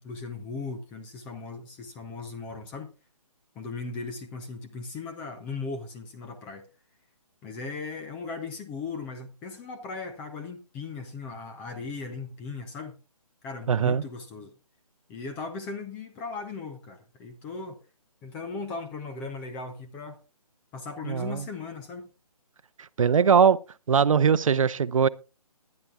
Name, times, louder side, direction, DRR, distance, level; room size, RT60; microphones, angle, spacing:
voice 1, 0.0-2.9 3.6-6.7 7.4-13.0 13.4-14.5 15.1-17.8 18.2-20.2 20.7-22.1, left 4 dB, 5° left, 0.5 m, -37 dB
voice 2, 13.7-14.0 21.0-21.4 22.8-23.6 23.9-25.1, right 6 dB, 55° right, 0.7 m, -21 dB
20.5 x 10.5 x 2.4 m
hypercardioid pair, 160°, 20 cm